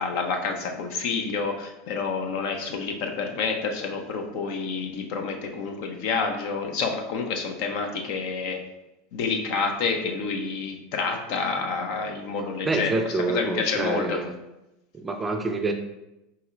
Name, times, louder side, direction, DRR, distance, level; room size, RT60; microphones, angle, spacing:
voice 1, 0.0-8.6 9.1-14.2, left 4 dB, 60° left, 4 dB, 0.7 m, -28 dB
voice 2, 12.7-14.3 15.0-15.7, right 3 dB, 15° right, 5 dB, 0.4 m, -27 dB
4.2 x 4.1 x 2.5 m, 0.93 s
supercardioid pair, 125°, 0 cm